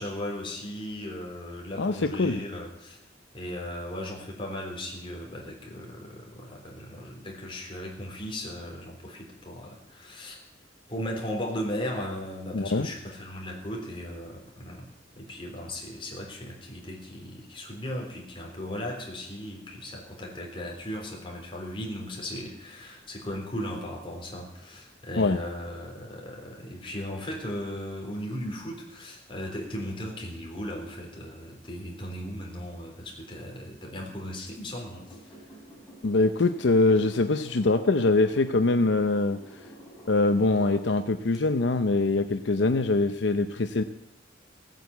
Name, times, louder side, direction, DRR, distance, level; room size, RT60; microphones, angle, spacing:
voice 1, 0.0-3.0 3.3-10.4 10.9-14.9 15.2-35.2, left 1 dB, 30° left, 0 dB, 3.8 m, -37 dB
voice 2, 1.8-2.4 12.5-12.9 25.2-25.4 36.0-39.4 40.1-43.8, left 3 dB, 75° left, 9 dB, 0.6 m, -23 dB
sound 1, 34.9-40.9 41.3-41.4, right 1 dB, ahead, 5.6 m, -49 dB
17.0 x 9.2 x 8.2 m, 0.85 s
head